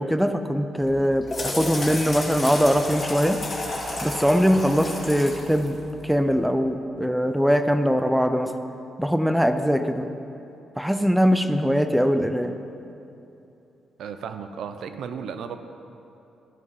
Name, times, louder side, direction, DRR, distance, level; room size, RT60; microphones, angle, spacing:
voice 1, 0.0-3.4 4.0-8.5 9.0-10.1 10.8-12.5, equal, 5° right, 8 dB, 0.6 m, -22 dB
sound 1, 0.8-6.4, left 1 dB, 20° left, 3.3 m, -32 dB
voice 2, 14.0-15.6, right 7 dB, 75° right, 9 dB, 0.7 m, -34 dB
14.0 x 11.0 x 4.8 m, 2.8 s
cardioid pair, 125°, 0 cm